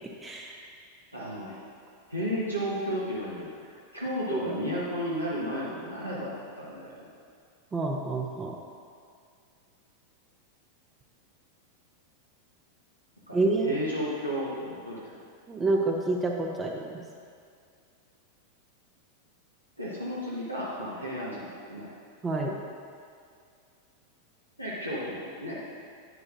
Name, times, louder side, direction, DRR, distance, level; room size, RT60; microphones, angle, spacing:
voice 1, 0.2-0.5 4.3-4.4 7.7-8.5 13.3-13.7 15.5-16.8 22.2-22.6, right 2 dB, 15° right, 0 dB, 0.7 m, -27 dB
voice 2, 1.1-1.6 2.1-7.1 13.3-15.2 19.8-21.9 24.6-25.6, equal, 90° right, -7 dB, 1.2 m, -33 dB
9.9 x 7.9 x 2.6 m, 2.3 s
figure-of-eight pair, 90°, 0 cm